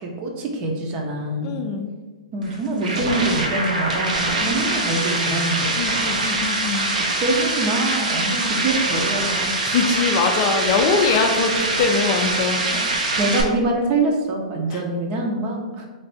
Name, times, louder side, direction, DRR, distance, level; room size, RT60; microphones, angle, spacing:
voice 1, 0.0-1.6 2.3-5.7 6.0-6.2 7.2-9.5 10.0-10.1 12.7-12.8 13.2-15.9, right 2 dB, 30° right, 1 dB, 0.7 m, -24 dB
voice 2, 1.4-1.9 4.4-4.6 5.8-6.9 9.6-12.8 14.7-14.8, left 4 dB, 40° left, 4 dB, 0.4 m, -22 dB
sound 1, 2.4-13.4, right 2 dB, 75° right, 0.8 m, -23 dB
3.3 x 2.6 x 4.0 m, 1.4 s
hypercardioid pair, 135°, 4 cm